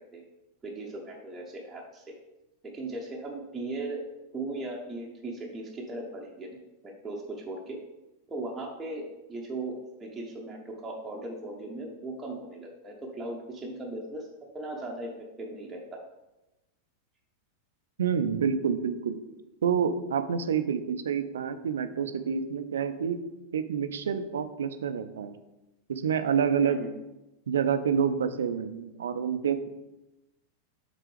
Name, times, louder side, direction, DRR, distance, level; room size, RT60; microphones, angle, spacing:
voice 1, 0.6-2.1 2.7-4.0 4.3-6.6 6.8-7.8 8.3-9.0 9.3-14.3 14.5-15.1 15.4-16.0 26.6-26.9, right 2 dB, 15° right, -2 dB, 0.8 m, -38 dB
voice 2, 18.0-19.2 19.6-23.2 23.5-25.3 25.9-26.8 27.5-29.7, right 7 dB, 65° right, 10 dB, 0.4 m, -28 dB
7.6 x 3.7 x 3.3 m, 0.98 s
figure-of-eight pair, 90°, 0 cm